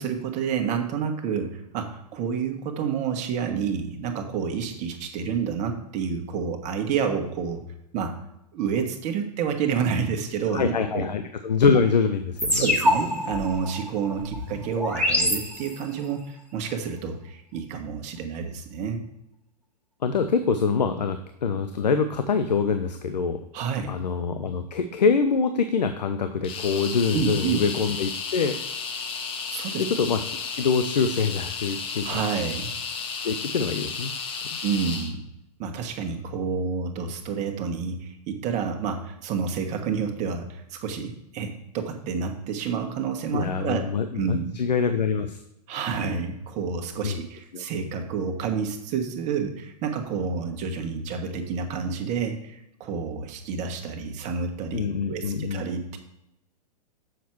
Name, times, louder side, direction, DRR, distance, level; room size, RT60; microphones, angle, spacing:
voice 1, 0.0-7.6 7.9-8.2 8.5-11.1 12.5-19.0 23.5-24.0 27.1-27.6 29.5-29.8 32.0-32.7 34.6-35.2 35.6-43.8 44.1-44.6 45.7-54.8 55.1-56.0, right 6 dB, 35° right, 5 dB, 1.3 m, -29 dB
voice 2, 10.5-12.7 20.0-23.4 23.9-28.6 29.8-32.2 33.2-34.1 43.3-45.4 47.0-47.2 47.5-47.6 54.7-55.7, left 5 dB, 85° left, 8 dB, 0.6 m, -25 dB
sound 1, 12.4-16.1, left 1 dB, 5° left, 1.8 m, -26 dB
sound 2, 26.4-35.1, left 5 dB, 25° left, 1.0 m, -33 dB
7.3 x 5.9 x 4.6 m, 0.85 s
hypercardioid pair, 115°, 21 cm